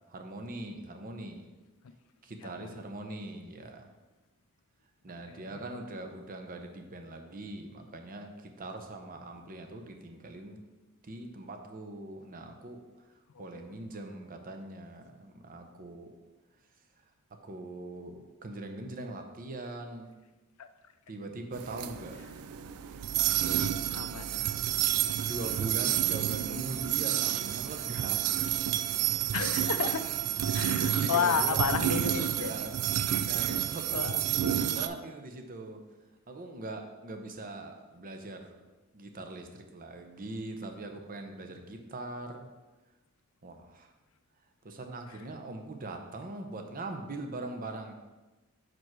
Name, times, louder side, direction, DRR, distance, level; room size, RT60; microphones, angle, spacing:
voice 1, 0.1-1.4 2.2-3.9 5.0-10.6 11.0-12.8 13.4-16.1 17.4-20.1 21.1-22.3 25.2-28.2 30.7-32.7 33.0-35.8 36.3-38.6 38.9-42.5 43.4-43.9 44.6-47.9, right 2 dB, 40° right, 4 dB, 0.7 m, -41 dB
voice 2, 5.3-5.6 13.3-13.8 20.6-20.7 23.9-24.6 29.3-30.0 30.5-32.5 33.9-34.2 34.7-34.8 45.1-45.2, left 7 dB, 70° left, 10 dB, 0.4 m, -32 dB
sound 1, 21.5-34.9, right 10 dB, 80° right, 0.4 m, -30 dB
6.1 x 5.1 x 4.5 m, 1.1 s
head